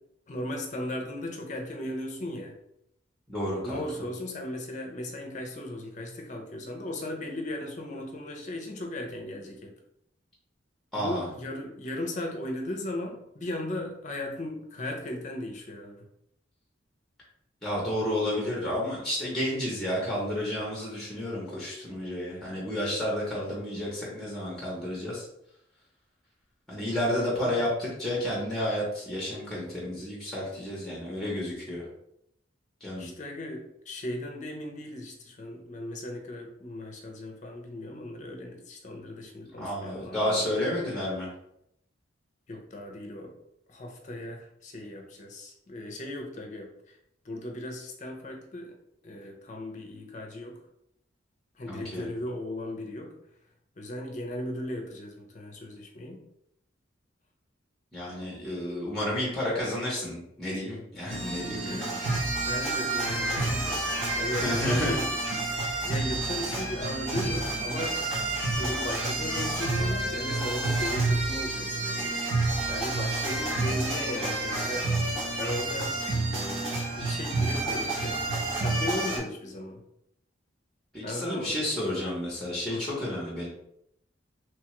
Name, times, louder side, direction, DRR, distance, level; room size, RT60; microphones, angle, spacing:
voice 1, 0.3-2.5 3.6-9.7 10.9-16.1 27.1-27.5 33.0-40.6 42.5-43.3 43.7-46.9 47.2-48.8 49.0-50.6 51.6-53.1 53.8-56.2 61.1-61.9 62.4-65.1 65.8-68.0 68.6-72.2 72.7-75.0 75.4-76.0 76.3-78.2 78.6-79.8 81.0-81.6 82.7-82.8, left 1 dB, 40° left, 2 dB, 0.5 m, -37 dB
voice 2, 3.3-3.8 10.9-11.2 17.6-25.3 26.7-31.9 32.8-33.1 39.6-41.3 51.6-52.1 57.9-62.0 64.3-65.0 80.9-83.5, left 1 dB, 5° left, -5 dB, 0.7 m, -31 dB
sound 1, 61.1-79.2, right 2 dB, 75° right, 0.9 m, -29 dB
3.1 x 2.3 x 2.9 m, 0.77 s
head